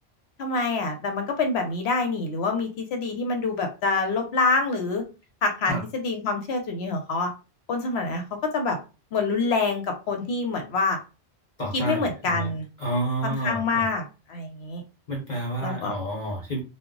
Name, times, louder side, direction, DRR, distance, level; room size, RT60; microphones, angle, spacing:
voice 1, 0.4-5.0 5.4-7.3 7.7-8.8 9.1-11.0 11.7-12.7 13.2-14.8 15.6-15.9, left 3 dB, 75° left, 4 dB, 1.0 m, -26 dB
voice 2, 11.6-12.5 12.8-13.9 15.1-16.6, right 1 dB, 45° left, -1 dB, 0.9 m, -29 dB
2.2 x 2.1 x 3.7 m, 0.31 s
omnidirectional pair, 1.1 m